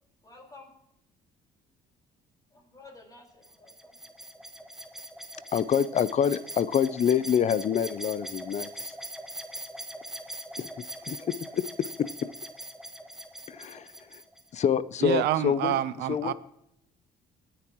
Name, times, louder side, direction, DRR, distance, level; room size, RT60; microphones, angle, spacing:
voice 1, 0.2-0.7 2.5-4.2, left 3 dB, 20° left, 4.7 m, -52 dB
sound 1, 3.4-14.5, right 1 dB, ahead, 1.3 m, -41 dB
voice 2, 5.5-8.9 10.6-12.3 13.5-14.2 14.5-15.8 16.1-16.3, left 8 dB, 40° left, 0.6 m, -27 dB
voice 3, 15.0-16.3, right 12 dB, 85° right, 0.7 m, -27 dB
24.0 x 10.0 x 3.0 m
cardioid pair, 110°, 17 cm